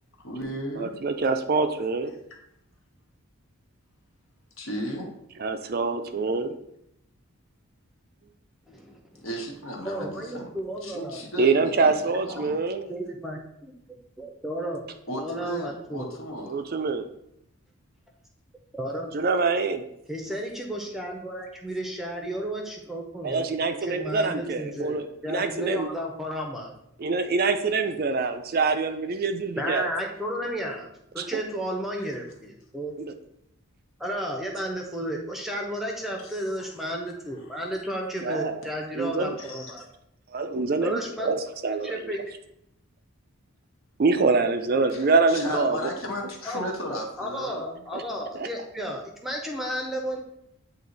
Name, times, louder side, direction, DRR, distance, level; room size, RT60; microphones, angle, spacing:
voice 1, 0.2-0.9 4.6-5.1 9.2-10.5 10.8-12.6 15.1-16.6 32.0-32.1 36.2-36.3 37.4-37.6 38.7-38.8 39.4-39.9 44.9-47.8, equal, 65° left, 0 dB, 1.3 m, -35 dB
voice 2, 0.8-2.1 5.4-6.6 11.4-12.9 16.5-17.1 19.1-19.8 23.2-25.9 27.0-29.9 31.2-31.4 33.0-33.1 38.2-38.7 38.9-39.4 40.3-41.9 44.0-45.8 47.9-48.0 48.3-48.5, right 4 dB, 40° right, 7 dB, 0.4 m, -25 dB
voice 3, 8.7-9.3 9.8-11.5 12.3-12.4 12.9-13.7 14.2-14.9 15.2-16.1 18.7-19.1 20.1-23.5 23.8-26.7 29.6-30.9 31.1-33.0 34.0-39.9 40.8-41.3 41.8-42.2 45.5-45.7 46.0-46.1 46.4-46.6 47.2-50.2, equal, ahead, 1 dB, 0.6 m, -33 dB
8.4 x 2.8 x 3.9 m, 0.78 s
head